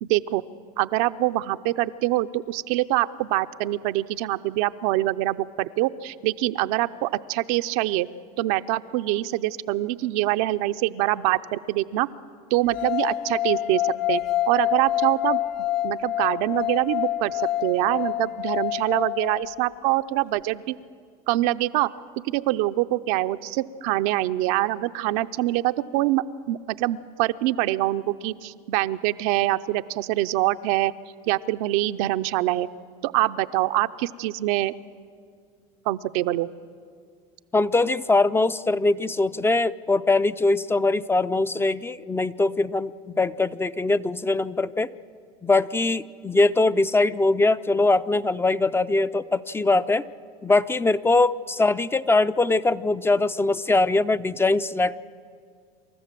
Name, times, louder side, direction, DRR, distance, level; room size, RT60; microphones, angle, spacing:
voice 1, 0.0-0.4 0.8-8.1 8.4-12.1 12.5-20.8 21.3-21.9 22.2-30.9 31.3-32.7 33.0-34.7 35.9-36.5, right 16 dB, 75° right, 11 dB, 0.6 m, -24 dB
sound 1, 12.7-19.8, left 13 dB, 50° left, 0.8 m, -27 dB
voice 2, 37.5-44.9 45.4-50.0 50.4-55.0, left 2 dB, 10° left, 13 dB, 0.4 m, -22 dB
27.0 x 13.5 x 7.5 m, 2.1 s
supercardioid pair, 110°, 19 cm